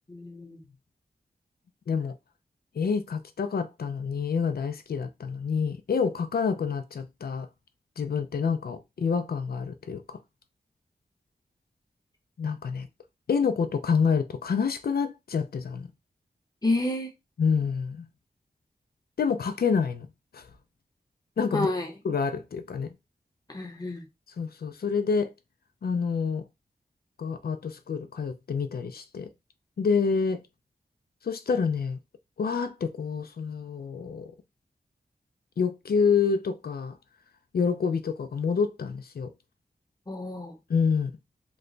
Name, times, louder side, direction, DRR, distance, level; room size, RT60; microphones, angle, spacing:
voice 1, 0.1-0.6 16.6-17.1 21.5-21.9 23.5-24.0 40.1-40.5, left 2 dB, 25° left, 0.9 m, -30 dB
voice 2, 2.8-7.5 8.0-10.2 12.4-12.9 13.3-15.9 17.4-18.1 19.2-20.1 20.3-20.5 21.4-21.7 22.0-22.9 24.4-25.3 25.8-26.4 27.2-29.3 29.8-30.4 31.2-32.0 32.4-34.3 35.6-37.0 37.5-39.3 40.7-41.1, left 5 dB, 70° left, 0.5 m, -27 dB
3.1 x 2.2 x 3.8 m
wide cardioid pair, 95°, 16 cm